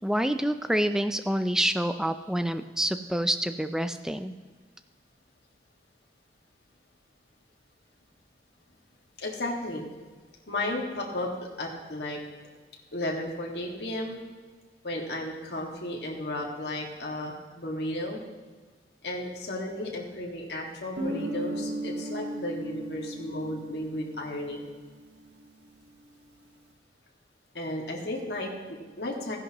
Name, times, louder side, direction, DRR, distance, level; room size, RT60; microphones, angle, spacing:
voice 1, 0.0-4.3, right 1 dB, 5° right, 9 dB, 0.4 m, -27 dB
voice 2, 9.2-9.8 10.5-11.3 11.6-12.2 12.9-14.2 14.8-18.2 19.0-24.6 27.5-29.4, left 1 dB, 70° left, -1 dB, 1.9 m, -34 dB
Guitar, 21.0-25.5, right 1 dB, 90° right, 1.4 m, -36 dB
15.0 x 10.5 x 3.0 m, 1.4 s
head